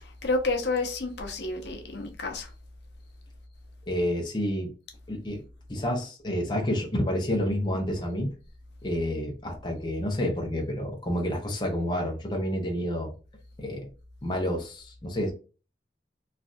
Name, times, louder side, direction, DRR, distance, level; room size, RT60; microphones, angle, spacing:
voice 1, 0.0-2.5, left 3 dB, 75° left, 0.7 m, -30 dB
voice 2, 3.9-4.7 5.1-5.4 5.7-8.3 8.8-13.1 13.6-13.9 14.2-15.3, equal, 25° left, 0.7 m, -29 dB
3.2 x 2.5 x 2.4 m
head